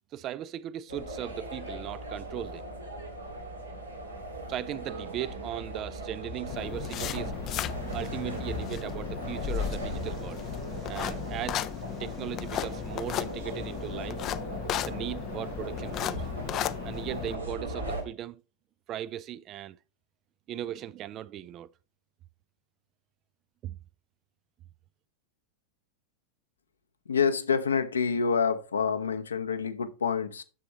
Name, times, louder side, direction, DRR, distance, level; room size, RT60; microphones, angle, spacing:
voice 1, 0.1-2.7 4.4-7.4 7.9-14.2 14.9-16.3 16.8-18.4 18.9-19.8 20.5-21.7 23.6-23.8, right 12 dB, 35° right, 0.3 m, -38 dB
sound 1, 0.9-18.0, right 1 dB, 80° right, 1.9 m, -38 dB
sound 2, 6.5-17.4, left 11 dB, 35° left, 0.4 m, -35 dB
voice 2, 27.1-30.4, left 6 dB, 70° left, 0.9 m, -27 dB
10.0 x 7.1 x 2.9 m
figure-of-eight pair, 90°, 0 cm